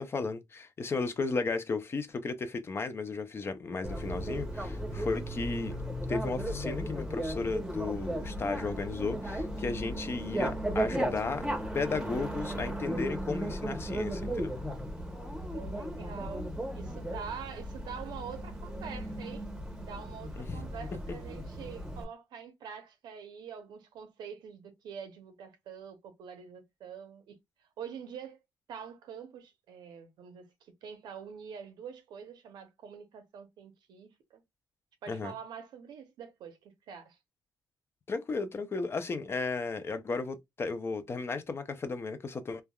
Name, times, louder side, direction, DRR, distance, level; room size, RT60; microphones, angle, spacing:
voice 1, 0.0-5.8 6.1-11.5 11.7-14.5 20.4-20.6 35.1-35.3 38.1-42.6, left 4 dB, 35° left, 0.5 m, -34 dB
Bicycle, 3.8-22.0, right 1 dB, 10° right, 0.8 m, -36 dB
voice 2, 15.5-19.5 19.8-27.4 27.8-28.4 28.7-34.4 35.0-37.2, right 7 dB, 85° right, 0.7 m, -45 dB
3.3 x 2.2 x 2.2 m
cardioid pair, 110°, 7 cm